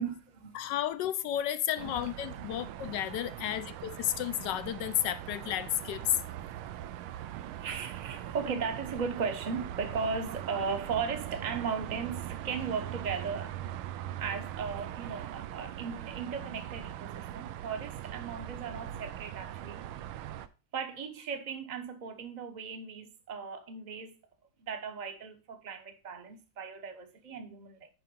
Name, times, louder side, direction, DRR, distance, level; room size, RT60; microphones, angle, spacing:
voice 1, 0.0-0.7 1.8-2.1 2.5-2.7 3.5-3.6 6.2-6.9 7.3-13.6 14.2-20.4 20.7-24.1 24.6-27.9, right 5 dB, 35° right, 0.7 m, -37 dB
voice 2, 0.5-6.2, left 12 dB, 75° left, 1.1 m, -32 dB
sound 1, 1.8-20.5, right 12 dB, 85° right, 1.5 m, -41 dB
10.0 x 3.8 x 5.3 m
omnidirectional pair, 2.3 m